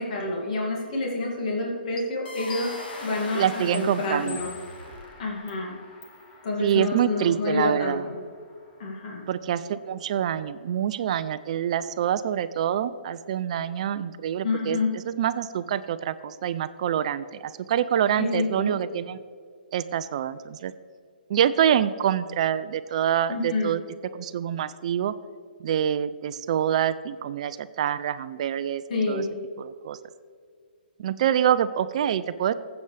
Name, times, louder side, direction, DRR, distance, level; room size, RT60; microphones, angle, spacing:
voice 1, 0.0-2.7 3.0-4.5 5.2-5.8 6.4-8.2 8.8-9.2 14.4-14.9 18.2-18.7 23.3-23.7 28.9-29.2, left 3 dB, 45° left, -2 dB, 2.3 m, -28 dB
sound 1, 2.0-2.1 2.5-3.1 3.7-3.8 4.3-4.8 5.5-5.6 6.0-6.2, left 4 dB, 15° left, 0.7 m, -41 dB
sound 2, 2.2-5.4, left 2 dB, 85° left, 2.2 m, -41 dB
Gong, 2.5-12.0, left 2 dB, 30° left, 1.6 m, -49 dB
voice 2, 3.3-4.4 6.6-8.0 9.3-14.8 15.0-19.2 19.7-20.7 21.3-23.8 24.1-25.1 25.6-28.8 29.1-29.2 29.6-30.0 31.0-32.5, right 10 dB, 40° right, 14 dB, 0.4 m, -26 dB
14.5 x 8.0 x 3.3 m, 2.1 s
hypercardioid pair, 155°, 5 cm